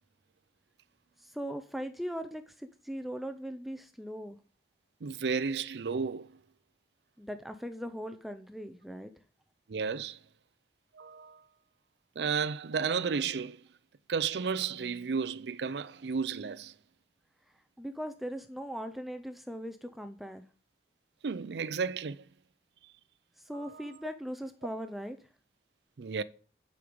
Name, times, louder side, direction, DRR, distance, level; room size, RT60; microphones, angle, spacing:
voice 1, 1.2-4.4 7.2-9.1 17.8-20.5 23.4-25.2, equal, ahead, 0.4 m, -39 dB
voice 2, 5.0-6.3 9.7-10.2 11.0-11.4 12.2-13.6 14.1-16.7 21.2-22.2 23.5-23.7 26.0-26.2, right 5 dB, 70° right, 0.5 m, -33 dB
9.9 x 5.2 x 5.1 m
head